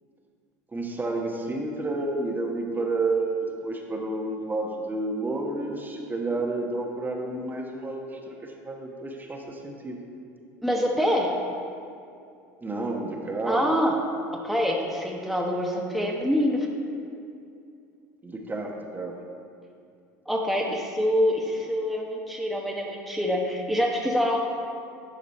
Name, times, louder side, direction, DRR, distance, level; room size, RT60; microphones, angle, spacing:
voice 1, 0.7-10.0 12.6-13.8 18.2-19.1, right 2 dB, 20° right, 1 dB, 1.2 m, -30 dB
voice 2, 10.6-11.3 13.4-13.9 14.4-16.7 20.3-24.4, equal, ahead, -2 dB, 1.1 m, -25 dB
11.5 x 4.9 x 4.3 m, 2.5 s
hypercardioid pair, 85°, 9 cm